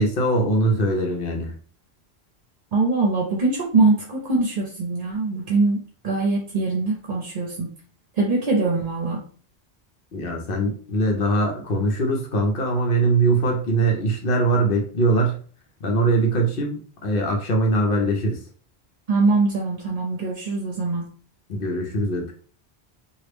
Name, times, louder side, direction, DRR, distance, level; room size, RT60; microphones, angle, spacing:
voice 1, 0.0-1.5 10.1-15.4 15.8-18.4 21.5-22.3, right 2 dB, 60° left, 2 dB, 0.9 m, -22 dB
voice 2, 2.7-5.8 6.0-7.7 8.2-9.2 19.1-21.1, right 3 dB, 50° right, -1 dB, 0.8 m, -22 dB
3.0 x 2.4 x 3.3 m, 0.42 s
omnidirectional pair, 1.1 m